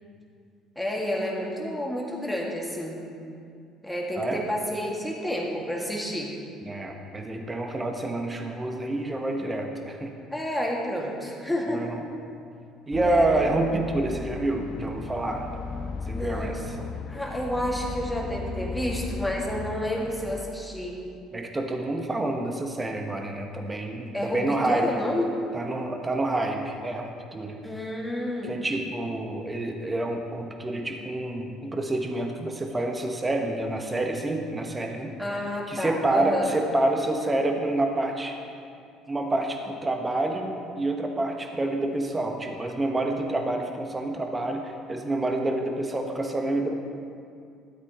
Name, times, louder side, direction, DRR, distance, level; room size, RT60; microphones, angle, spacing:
voice 1, 0.8-3.0 3.8-6.3 10.3-11.9 13.0-13.5 16.0-16.5 17.1-21.0 24.1-25.3 27.6-28.5 35.2-36.5, left 1 dB, 5° left, -2 dB, 2.1 m, -30 dB
voice 2, 6.6-10.1 11.7-12.0 12.9-15.5 16.1-16.9 21.3-24.9 25.5-27.6 28.4-35.1 35.7-38.4 39.1-46.8, right 2 dB, 20° right, 3 dB, 1.3 m, -28 dB
sound 1, 12.9-20.4, left 4 dB, 45° left, 0.4 m, -36 dB
12.5 x 8.1 x 3.1 m, 2.4 s
hypercardioid pair, 60°, 0 cm